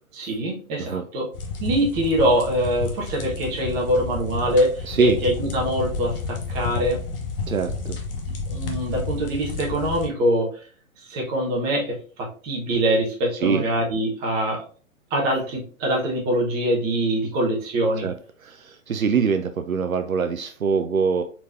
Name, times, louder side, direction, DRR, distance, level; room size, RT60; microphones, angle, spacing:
voice 1, 0.1-1.3 1.6-7.0 8.3-10.5 11.1-14.6 15.1-18.1, right 1 dB, 20° right, -1 dB, 1.3 m, -24 dB
sound 1, 1.3-10.1, left 3 dB, 40° left, 1.0 m, -31 dB
voice 2, 4.9-5.2 7.5-8.0 13.4-13.6 18.0-18.1 18.4-21.2, right 5 dB, 75° right, 8 dB, 0.6 m, -23 dB
4.5 x 4.3 x 2.7 m, 0.41 s
figure-of-eight pair, 120°, 42 cm